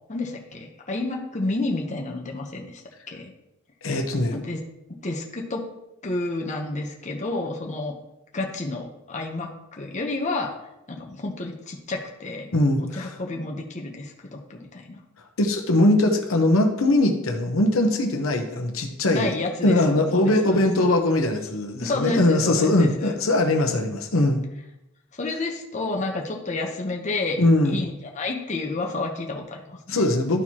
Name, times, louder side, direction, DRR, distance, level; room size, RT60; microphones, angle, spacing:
voice 1, 0.1-2.8 3.1-3.3 4.3-5.7 6.0-8.0 8.3-10.5 10.9-12.5 12.8-15.0 19.1-19.8 20.1-20.9 21.8-23.1 25.2-27.4 27.7-30.1, left 2 dB, 35° left, 0 dB, 0.8 m, -30 dB
voice 2, 3.8-4.4 12.5-13.1 15.4-19.3 19.6-24.4 27.4-27.8 29.9-30.4, left 1 dB, 75° left, 3 dB, 0.9 m, -21 dB
12.5 x 4.5 x 2.9 m, 0.89 s
head